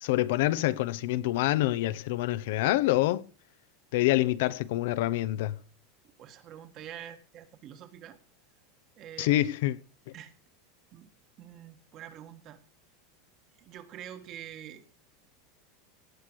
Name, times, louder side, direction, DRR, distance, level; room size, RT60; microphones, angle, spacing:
voice 1, 0.0-3.2 3.9-5.6 9.2-9.8, left 16 dB, 70° left, 0.8 m, -26 dB
voice 2, 6.2-8.2 9.0-9.5 10.1-10.3 10.9-11.1 11.4-12.6 13.6-14.8, right 10 dB, 35° right, 1.7 m, -46 dB
17.5 x 6.7 x 6.3 m
supercardioid pair, 150°, 0 cm